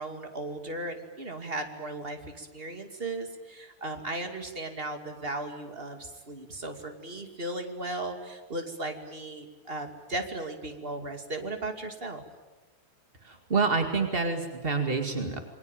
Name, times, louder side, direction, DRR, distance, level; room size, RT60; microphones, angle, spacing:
voice 1, 0.0-12.2, right 2 dB, 25° right, 6 dB, 1.3 m, -36 dB
voice 2, 13.2-15.4, right 4 dB, 50° right, 6 dB, 0.6 m, -27 dB
28.0 x 23.0 x 9.0 m, 1.2 s
omnidirectional pair, 5.0 m